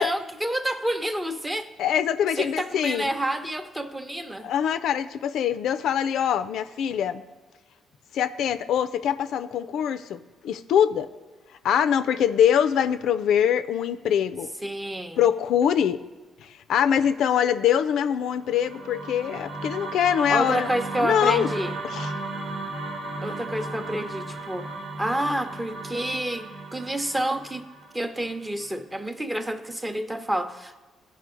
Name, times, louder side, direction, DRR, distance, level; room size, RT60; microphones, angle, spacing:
voice 1, 0.0-1.7 2.4-4.5 14.6-15.2 20.3-21.7 23.2-24.7 25.0-27.7 27.9-30.8, right 1 dB, 15° right, 0.7 m, -29 dB
voice 2, 1.8-3.1 4.4-7.2 8.1-11.1 11.6-14.5 15.2-16.0 16.4-20.7 21.0-21.5 21.8-22.1, left 9 dB, 80° left, 0.4 m, -23 dB
sound 1, 18.4-28.7, right 2 dB, 75° right, 1.3 m, -35 dB
15.0 x 5.3 x 3.8 m
cardioid pair, 90°, 0 cm